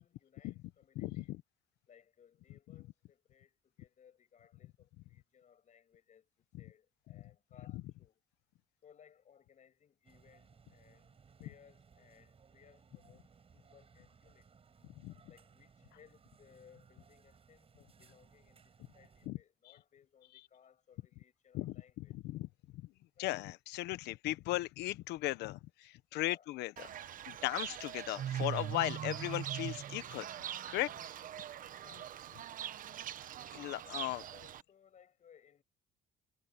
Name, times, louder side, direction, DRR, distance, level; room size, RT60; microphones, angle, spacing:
voice 1, 0.0-1.3 1.9-6.3 6.6-8.2 8.8-14.5 15.3-22.2 23.2-23.4 26.1-26.5 31.6-32.2 34.1-35.6, left 8 dB, 45° left, 7.5 m, -64 dB
voice 2, 1.0-1.4 7.7-7.8 15.0-15.1 19.3-19.4 21.5-22.5 23.2-26.9 27.3-30.3 30.7-30.9 33.5-34.2, left 17 dB, 85° left, 1.0 m, -37 dB
sound 1, 10.0-19.3, right 6 dB, 35° right, 7.7 m, -64 dB
Fowl / Bird, 26.8-34.6, right 10 dB, 55° right, 1.0 m, -42 dB
cardioid pair, 110°, 17 cm